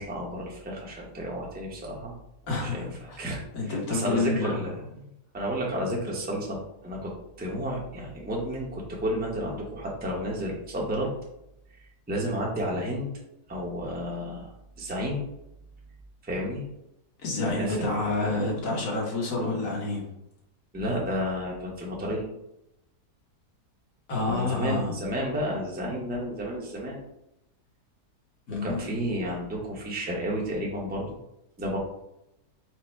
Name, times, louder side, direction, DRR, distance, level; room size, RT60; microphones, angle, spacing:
voice 1, 0.0-2.1 2.6-4.7 5.3-6.6 6.8-7.1 7.4-11.1 12.1-13.1 13.5-15.2 16.2-16.6 17.5-18.4 20.7-22.2 24.3-27.0 28.6-31.1 31.6-31.8, equal, 10° right, -2 dB, 0.6 m, -31 dB
voice 2, 2.5-3.2 3.5-4.6 5.0-5.1 17.2-20.0 24.1-24.9 28.5-29.0, left 2 dB, 60° left, -1 dB, 1.5 m, -28 dB
4.7 x 2.2 x 4.4 m, 0.84 s
omnidirectional pair, 1.7 m